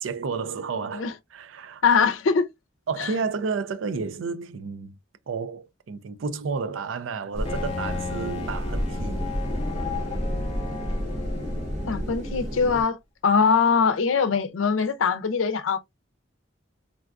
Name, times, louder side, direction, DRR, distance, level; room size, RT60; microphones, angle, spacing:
voice 1, 0.0-1.1 1.3-1.8 2.9-5.0 5.3-9.3, right 5 dB, 80° right, 0.4 m, -31 dB
voice 2, 1.8-2.4 3.0-3.1 11.9-13.0 13.2-15.8, left 5 dB, 85° left, 0.5 m, -22 dB
sound 1, 7.3-12.8, equal, 40° right, 0.8 m, -30 dB
Bowed string instrument, 7.4-12.2, left 5 dB, 30° left, 0.4 m, -36 dB
3.7 x 2.2 x 2.4 m
head